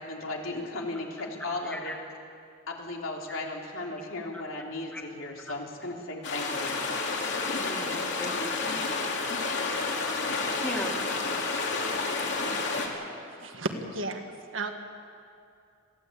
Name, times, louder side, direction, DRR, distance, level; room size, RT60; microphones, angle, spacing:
voice 1, 0.0-1.9 2.7-6.8, left 2 dB, 90° left, 0 dB, 3.3 m, -36 dB
voice 2, 1.6-2.0 3.3-3.4 4.3-4.4 4.9-5.0 7.6-8.9 10.6-11.1, left 1 dB, 5° left, 1 dB, 2.1 m, -38 dB
sound 1, 6.2-12.9, left 3 dB, 60° left, 2.8 m, -30 dB
voice 3, 12.2-13.1 13.4-14.7, right 2 dB, 70° right, 5 dB, 1.8 m, -36 dB
22.0 x 15.5 x 8.6 m, 2.5 s
head